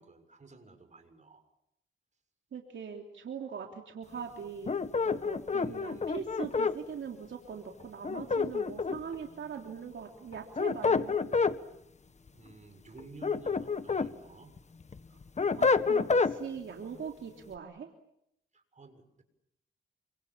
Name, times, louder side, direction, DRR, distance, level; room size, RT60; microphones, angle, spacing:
voice 1, 0.0-1.4 5.5-6.1 12.3-14.6 18.5-19.2, right 3 dB, 35° right, 7 dB, 6.8 m, -53 dB
voice 2, 2.5-4.8 5.1-11.4 15.6-17.9, right 6 dB, 70° right, 2 dB, 3.4 m, -41 dB
sound 1, 4.7-6.8 8.0-9.2 10.3-11.6 13.0-14.1 14.6-16.4, left 4 dB, 35° left, 1.5 m, -28 dB
28.5 x 26.0 x 7.5 m, 0.79 s
cardioid pair, 105°, 20 cm